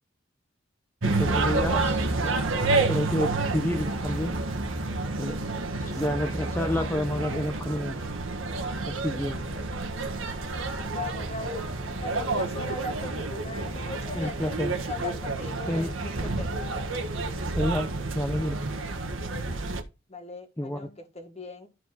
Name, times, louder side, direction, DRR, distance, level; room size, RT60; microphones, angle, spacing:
voice 1, 1.0-2.3 2.9-4.3 5.2-5.5 5.9-8.0 8.9-9.4 14.1-14.7 15.7-15.9 17.6-18.6 20.6-20.9, left 1 dB, 10° left, 0.7 m, -30 dB
sound 1, 1.0-19.8, right 3 dB, 80° right, 1.6 m, -29 dB
voice 2, 5.7-6.0 9.5-9.6 10.6-11.8 12.0-16.6 20.1-21.7, left 2 dB, 35° left, 1.9 m, -39 dB
12.5 x 4.6 x 4.1 m
head